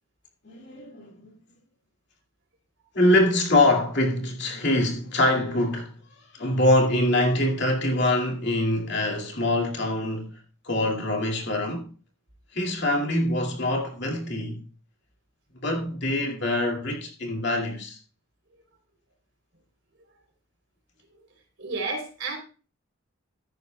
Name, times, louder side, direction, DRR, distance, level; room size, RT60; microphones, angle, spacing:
voice 1, 0.4-1.3 2.9-5.9 6.3-10.3 10.6-11.9 12.5-14.6 15.6-18.0, left 1 dB, 55° left, 2.4 m, -24 dB
voice 2, 21.6-22.4, right 3 dB, 60° right, 3.3 m, -31 dB
14.5 x 10.5 x 2.3 m
head